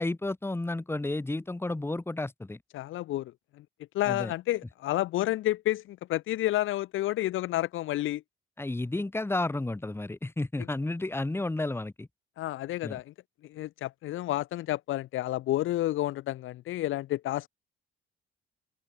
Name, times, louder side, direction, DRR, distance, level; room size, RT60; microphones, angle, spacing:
voice 1, 0.0-2.6 4.1-4.3 8.6-12.1 12.8-13.0, left 2 dB, 10° left, 1.9 m, -32 dB
voice 2, 2.7-3.6 3.9-8.2 10.6-10.7 12.4-13.1 13.4-17.5, left 15 dB, 85° left, 1.6 m, -30 dB
open air
cardioid pair, 90°, 20 cm